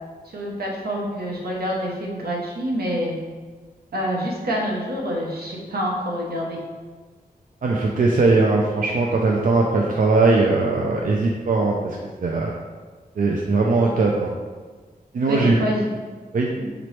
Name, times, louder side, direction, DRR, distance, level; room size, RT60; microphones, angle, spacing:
voice 1, 0.3-3.1 3.9-6.6 15.3-15.9 16.6-16.7, equal, 85° right, -2 dB, 0.9 m, -27 dB
voice 2, 7.6-12.5 13.2-14.3 15.1-15.7 16.3-16.5, right 3 dB, 60° right, -2 dB, 0.4 m, -20 dB
5.1 x 3.0 x 3.2 m, 1.4 s
wide cardioid pair, 135°, 16 cm